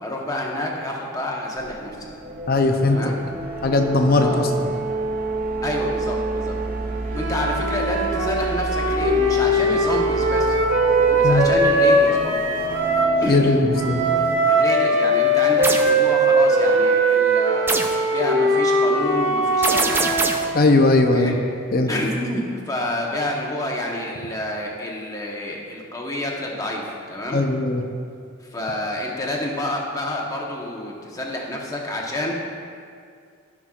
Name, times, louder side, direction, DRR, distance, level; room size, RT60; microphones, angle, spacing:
voice 1, 0.0-2.0 2.9-3.2 4.2-4.4 5.6-6.5 7.1-10.6 11.1-12.5 13.2-13.5 14.4-17.8 18.1-20.0 21.1-21.3 21.9-27.4 28.5-32.4, left 1 dB, 15° left, -1 dB, 1.0 m, -28 dB
sound 1, 1.6-14.4, right 3 dB, 40° right, 0.7 m, -30 dB
voice 2, 2.5-3.0 3.6-4.7 11.2-11.5 13.3-14.0 20.5-21.3 21.7-21.9 27.3-27.8, left 2 dB, 45° left, 4 dB, 0.6 m, -18 dB
sound 2, 7.1-13.2 13.7-20.4, right 1 dB, 75° right, 1.5 m, -20 dB
sound 3, 15.6-15.9 17.7-18.0 19.6-20.6, right 2 dB, 10° right, 0.4 m, -23 dB
15.0 x 6.0 x 2.4 m, 2.3 s
head